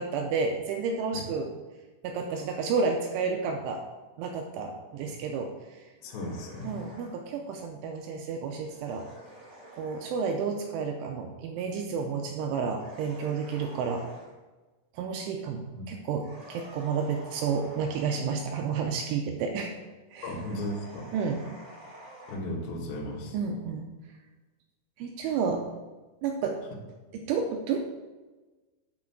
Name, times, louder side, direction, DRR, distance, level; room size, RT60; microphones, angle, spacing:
voice 1, 0.0-1.5 2.0-3.8 4.2-5.5 6.6-9.1 9.7-14.0 15.0-19.7 20.1-20.3 21.1-21.4 23.3-23.9 25.0-25.7 26.2-26.6 27.1-27.8, right 5 dB, 80° right, 3 dB, 3.0 m, -31 dB
voice 2, 6.0-6.7 15.8-15.9 20.2-21.1 22.3-23.4, left 1 dB, 65° left, -3 dB, 2.6 m, -35 dB
sound 1, 6.0-7.2 8.5-10.2 12.7-14.3 16.2-18.2 20.1-22.4, right 1 dB, 20° right, 2.5 m, -49 dB
6.9 x 6.2 x 7.2 m, 1.2 s
omnidirectional pair, 5.8 m